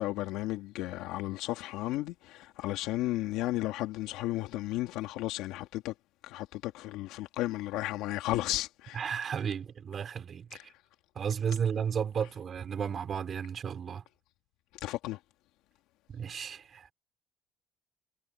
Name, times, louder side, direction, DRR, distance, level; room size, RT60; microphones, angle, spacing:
voice 1, 0.0-5.9 6.2-9.0 10.5-10.6 14.8-15.2, left 16 dB, 85° left, 2.1 m, -34 dB
voice 2, 8.9-10.7 11.2-14.0 16.1-16.9, right 7 dB, 50° right, 3.7 m, -33 dB
supercardioid pair, 75°, 0 cm